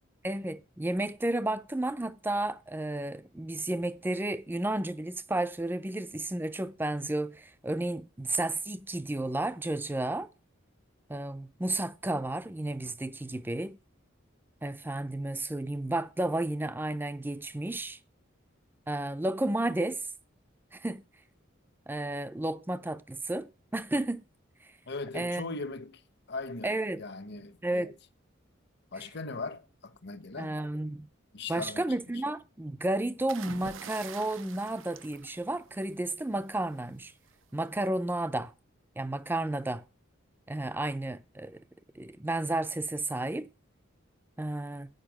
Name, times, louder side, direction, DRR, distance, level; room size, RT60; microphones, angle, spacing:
voice 1, 0.2-10.3 11.1-13.8 14.6-18.0 18.9-20.1 20.7-21.0 21.9-24.2 24.6-24.7 25.1-25.5 26.6-27.0 27.6-28.0 30.4-31.1 31.5-37.1 37.5-38.5 39.0-39.9 40.5-41.6 42.0-43.5 44.4-44.9, right 1 dB, 10° right, 0.5 m, -32 dB
voice 2, 24.9-26.0 26.3-27.9 28.9-30.6 31.3-31.9, left 3 dB, 55° left, 1.0 m, -39 dB
sound 1, 33.3-36.0 37.3-37.6, right 8 dB, 75° right, 0.5 m, -46 dB
9.0 x 5.4 x 7.5 m
head